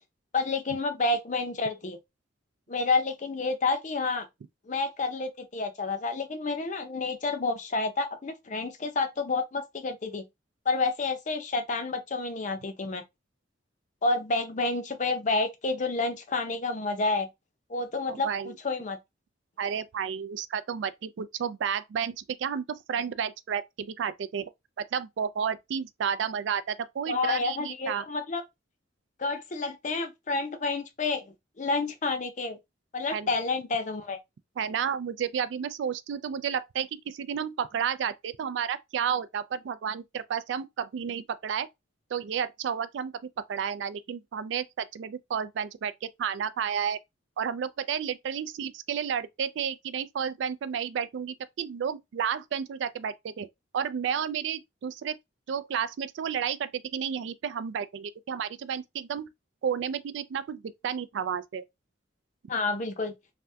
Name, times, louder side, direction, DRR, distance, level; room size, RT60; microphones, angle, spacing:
voice 1, 0.3-2.0 2.7-4.3 4.7-10.2 10.7-13.0 14.0-17.3 17.7-19.0 27.1-28.4 29.2-32.6 32.9-34.2 62.5-63.1, left 3 dB, 40° left, 0.5 m, -29 dB
voice 2, 18.1-18.5 19.6-24.5 24.9-28.1 33.1-33.3 34.6-41.7 42.1-47.0 47.4-53.5 53.7-55.1 55.5-59.3 59.6-61.6, right 7 dB, 70° right, 0.3 m, -31 dB
3.3 x 2.2 x 2.6 m
head